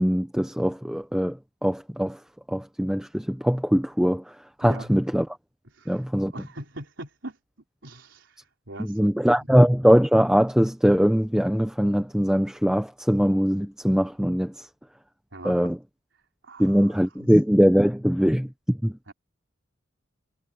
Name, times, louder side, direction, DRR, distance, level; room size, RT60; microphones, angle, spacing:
voice 1, 0.0-1.4 1.6-2.2 2.5-4.2 4.6-5.3 5.9-6.3 8.8-14.5 15.4-15.8 16.6-18.9, equal, 5° right, 0.8 m, -21 dB
voice 2, 4.6-4.9 5.6-7.4 7.8-9.1 15.3-15.7 16.1-17.4 19.1-19.2, right 2 dB, 70° right, 4.0 m, -42 dB
head